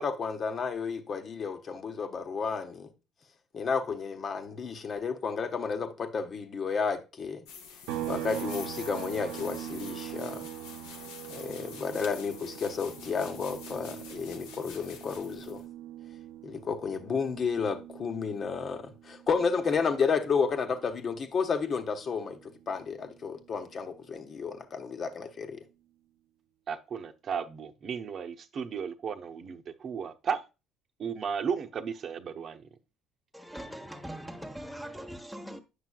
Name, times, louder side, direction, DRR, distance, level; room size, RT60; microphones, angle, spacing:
voice 1, 0.0-2.9 3.5-7.4 8.1-10.5 11.3-15.6 16.4-25.6, left 5 dB, 45° left, 1.1 m, -32 dB
sound 1, 7.4-15.6, left 6 dB, 80° left, 0.9 m, -47 dB
sound 2, 7.9-21.4 21.8-24.0, right 13 dB, 80° right, 0.6 m, -43 dB
voice 2, 26.7-30.4 31.0-32.6, right 6 dB, 50° right, 0.9 m, -34 dB
voice 3, 33.3-35.6, equal, ahead, 1.1 m, -41 dB
8.5 x 5.9 x 2.3 m
hypercardioid pair, 65°, 0 cm